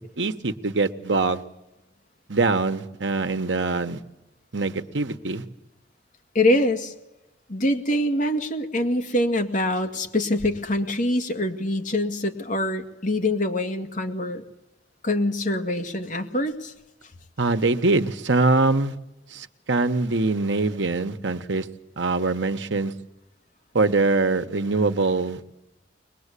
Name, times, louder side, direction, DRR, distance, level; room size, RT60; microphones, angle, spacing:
voice 1, 0.2-1.4 2.3-4.0 4.5-5.4 17.4-18.9 19.3-21.7 22.0-22.9 23.7-25.6, right 3 dB, 90° right, 9 dB, 1.2 m, -23 dB
voice 2, 6.3-6.9 7.5-14.4 15.0-16.7, left 1 dB, 45° left, 6 dB, 2.2 m, -24 dB
23.0 x 21.0 x 8.4 m, 0.92 s
head